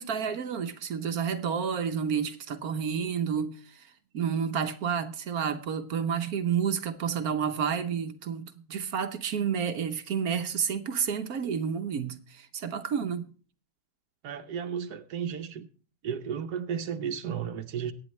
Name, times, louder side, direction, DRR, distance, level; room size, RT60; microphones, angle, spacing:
voice 1, 0.0-13.3, right 7 dB, 70° right, 1.4 m, -30 dB
voice 2, 14.2-15.7 16.0-17.9, right 8 dB, 90° right, 1.4 m, -33 dB
23.0 x 9.9 x 3.2 m
omnidirectional pair, 1.6 m